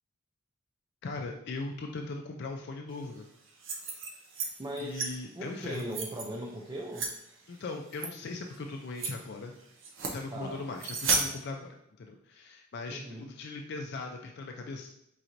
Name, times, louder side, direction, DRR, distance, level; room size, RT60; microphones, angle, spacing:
voice 1, 1.0-3.3 4.8-5.8 7.5-9.5 10.1-14.9, left 3 dB, 50° left, 3 dB, 0.4 m, -39 dB
sound 1, 3.5-4.5 4.8-5.1 5.6-6.3 6.9-7.1 7.9-8.1 8.5-8.6 9.0-9.1 9.8-10.2 10.8-11.2, right 4 dB, 60° right, 0.6 m, -32 dB
voice 2, 4.6-7.1 10.3-10.7 12.9-13.3, right 1 dB, 20° right, 0 dB, 0.4 m, -39 dB
4.4 x 3.9 x 2.6 m, 0.77 s
head